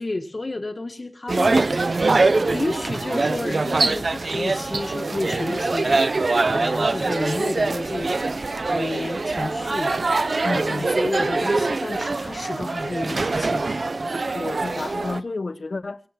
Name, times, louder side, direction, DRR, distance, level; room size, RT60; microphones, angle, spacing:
voice 1, 0.0-1.7 2.2-5.9 6.5-8.1 8.7-9.9 10.5-13.6, left 2 dB, 45° left, 1.7 m, -31 dB
sound 1, 1.3-15.2, right 3 dB, 65° right, 0.8 m, -23 dB
voice 2, 10.4-10.9 14.3-16.0, left 3 dB, 65° left, 0.9 m, -31 dB
24.0 x 8.3 x 5.8 m
wide cardioid pair, 80°, 0 cm